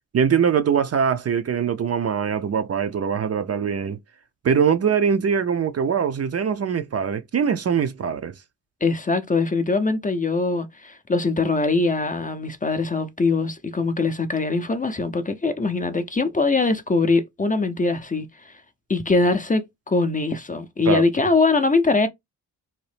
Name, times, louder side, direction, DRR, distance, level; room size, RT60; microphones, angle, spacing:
voice 1, 0.1-4.0 4.4-8.3 20.9-21.1, right 7 dB, 40° right, 0.5 m, -22 dB
voice 2, 8.8-18.5 18.9-22.1, left 3 dB, 20° left, 0.5 m, -22 dB
2.8 x 2.0 x 3.2 m
cardioid pair, 80°, 38 cm